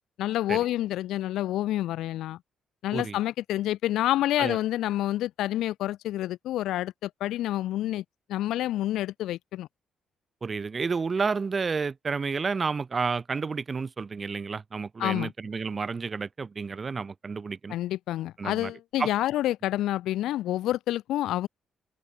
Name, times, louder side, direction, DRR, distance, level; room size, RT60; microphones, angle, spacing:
voice 1, 0.2-2.4 2.8-8.0 8.3-9.7 15.0-15.3 17.7-21.5, left 14 dB, 85° left, 1.2 m, -28 dB
voice 2, 10.4-17.7 18.4-18.7 19.0-19.1, right 4 dB, 35° right, 1.9 m, -30 dB
cardioid pair, 90°, 0 cm